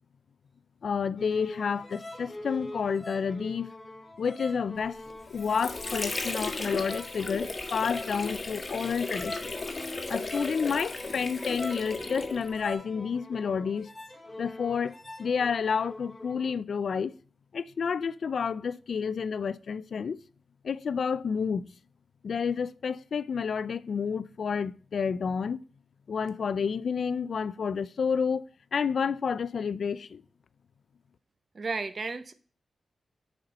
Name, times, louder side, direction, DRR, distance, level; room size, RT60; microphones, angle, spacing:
voice 1, 0.8-3.7 4.2-5.0 5.3-9.5 10.1-13.9 14.4-17.1 17.5-20.2 20.6-21.7 22.2-25.6 26.1-28.5 28.7-30.2, left 6 dB, 70° left, 0.3 m, -30 dB
sound 1, 1.2-16.5, left 1 dB, 10° left, 1.3 m, -44 dB
Water / Sink (filling or washing), 5.1-12.7, left 3 dB, 30° left, 1.2 m, -35 dB
voice 2, 31.5-32.3, right 4 dB, 45° right, 0.7 m, -33 dB
6.7 x 4.4 x 6.4 m
wide cardioid pair, 105°, 0 cm